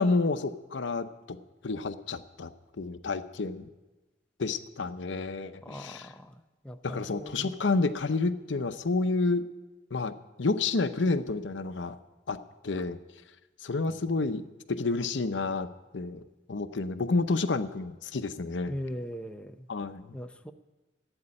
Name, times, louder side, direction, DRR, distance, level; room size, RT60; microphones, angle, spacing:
voice 1, 0.0-1.4 1.6-2.5 2.8-3.7 4.4-6.1 6.8-9.4 9.9-10.1 10.4-12.0 12.3-12.4 12.6-13.0 13.6-14.4 14.7-15.7 15.9-16.2 16.5-18.7 19.7-20.2, left 3 dB, 75° left, 11 dB, 0.7 m, -29 dB
voice 2, 5.6-6.3 6.6-7.6 13.9-14.0 18.7-19.7 20.1-20.5, equal, 5° left, 6 dB, 0.6 m, -40 dB
12.5 x 8.8 x 9.7 m, 1.1 s
head